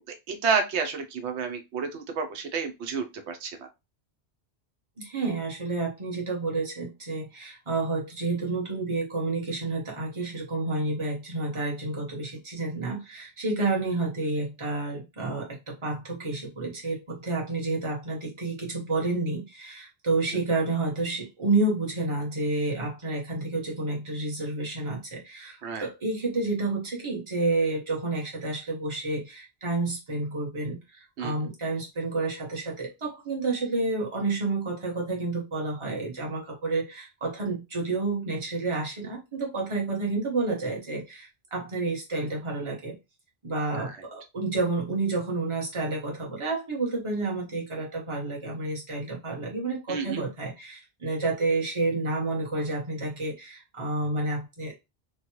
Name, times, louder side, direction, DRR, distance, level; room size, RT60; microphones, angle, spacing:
voice 1, 0.3-3.5 25.6-25.9 31.2-31.3 49.9-50.2, right 5 dB, 90° right, 0.9 m, -30 dB
voice 2, 5.0-42.9 43.4-54.8, right 3 dB, 30° right, 1.0 m, -30 dB
3.1 x 2.2 x 2.9 m
omnidirectional pair, 1.1 m